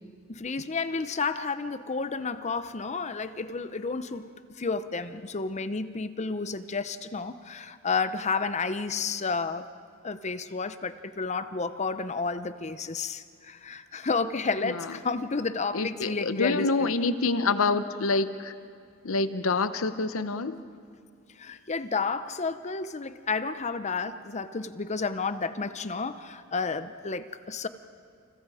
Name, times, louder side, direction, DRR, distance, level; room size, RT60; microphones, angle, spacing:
voice 1, 0.3-9.6 10.0-16.9 21.4-27.7, left 4 dB, 35° left, 12 dB, 0.7 m, -31 dB
voice 2, 15.7-18.5 19.0-20.6, left 3 dB, 75° left, 12 dB, 0.9 m, -27 dB
29.0 x 28.5 x 4.9 m, 2.3 s
head